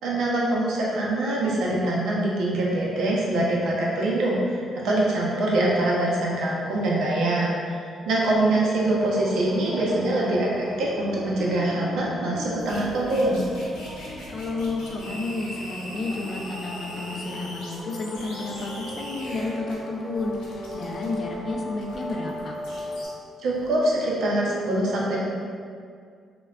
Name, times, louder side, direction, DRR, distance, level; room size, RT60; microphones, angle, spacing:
voice 1, 0.0-13.4 23.4-25.2, right 1 dB, 80° right, -5 dB, 0.6 m, -24 dB
sound 1, 8.1-23.1, equal, 5° left, 0.7 m, -38 dB
voice 2, 9.8-10.5 14.3-22.6, left 3 dB, 50° left, 0 dB, 0.4 m, -31 dB
sound 2, 12.6-19.8 20.2-23.1 23.5-23.8, left 1 dB, 85° left, 0.7 m, -41 dB
3.3 x 2.2 x 2.3 m, 2.2 s
cardioid pair, 90°, 0 cm